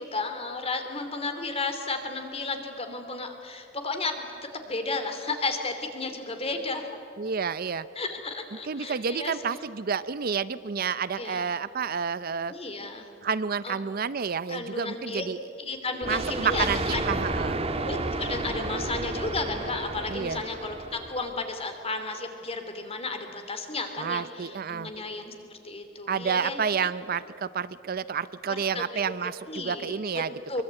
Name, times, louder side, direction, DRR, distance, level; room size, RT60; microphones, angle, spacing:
voice 1, 0.0-6.9 7.9-9.6 11.2-11.5 12.5-13.1 13.6-13.8 14.5-15.3 15.6-17.2 17.8-26.6 28.5-30.2 30.5-30.6, left 3 dB, 30° left, 6 dB, 2.9 m, -33 dB
voice 2, 7.2-7.9 8.7-12.5 13.2-15.4 16.1-16.8 17.1-17.6 20.1-20.4 24.0-24.9 26.1-30.3, right 6 dB, 50° right, 15 dB, 0.6 m, -29 dB
Thunder, 16.0-21.4, right 2 dB, 30° right, 1.6 m, -31 dB
23.5 x 23.5 x 9.0 m, 2.8 s
head